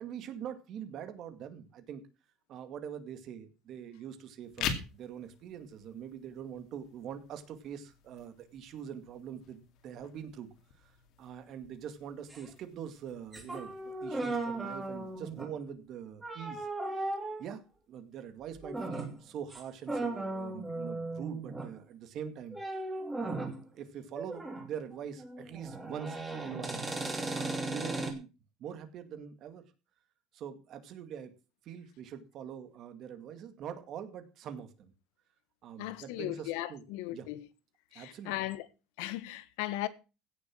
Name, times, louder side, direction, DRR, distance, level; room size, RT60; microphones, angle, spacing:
voice 1, 0.0-2.0 2.5-10.5 10.8-10.9 11.2-16.7 17.0-17.1 17.4-17.6 17.9-22.6 23.2-26.8 27.3-28.3 28.6-29.6 30.3-31.4 31.6-34.9 35.6-36.8 37.1-37.3 37.9-38.4, right 8 dB, 40° right, 2.1 m, -44 dB
sound 1, 4.4-15.4, left 7 dB, 50° left, 2.4 m, -45 dB
sound 2, 12.3-12.5 13.3-15.6 16.2-17.5 18.6-19.1 19.5-19.6 19.9-21.7 22.5-23.6 24.1-24.7 24.9-28.1, right 2 dB, 10° right, 2.7 m, -37 dB
voice 2, 35.8-37.4 37.9-38.6 39.0-39.9, left 16 dB, 85° left, 1.3 m, -37 dB
16.5 x 7.1 x 6.2 m
cardioid pair, 160°, 0 cm